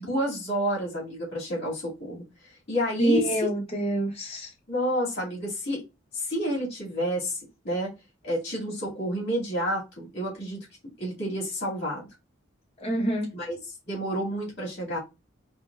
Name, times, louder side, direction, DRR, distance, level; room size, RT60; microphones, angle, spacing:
voice 1, 0.1-2.2 2.7-3.5 4.7-5.8 6.1-7.4 7.6-7.9 8.2-10.7 11.0-12.1 13.3-13.6 13.9-15.0, equal, 50° left, 2.2 m, -29 dB
voice 2, 3.0-4.5 12.8-13.3, right 1 dB, 30° left, 0.9 m, -26 dB
5.0 x 2.3 x 2.4 m
head